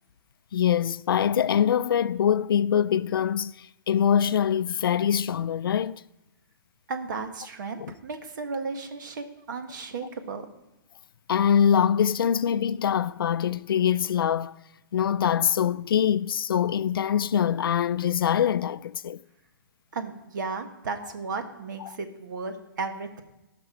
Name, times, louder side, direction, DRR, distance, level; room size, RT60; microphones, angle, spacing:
voice 1, 0.5-6.0 7.8-7.9 11.3-14.5 14.9-19.2 21.8-22.0, left 9 dB, 90° left, 0.4 m, -24 dB
voice 2, 6.9-10.5 19.9-23.2, right 4 dB, 60° right, 1.4 m, -34 dB
15.5 x 6.0 x 4.8 m
hypercardioid pair, 160°, 11 cm